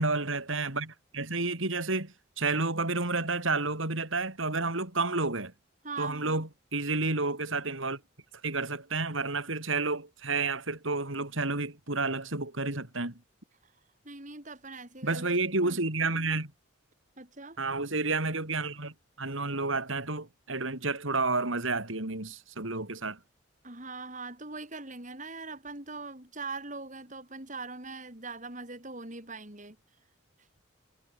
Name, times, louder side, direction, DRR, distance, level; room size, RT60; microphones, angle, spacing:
voice 1, 0.0-5.5 6.0-8.0 8.4-13.1 15.0-16.5 17.6-23.2, right 3 dB, 75° right, 3.8 m, -30 dB
voice 2, 5.8-6.4 13.6-13.7 14.0-15.3 15.6-15.8 17.2-17.6 23.6-29.8, right 3 dB, 40° right, 4.5 m, -41 dB
head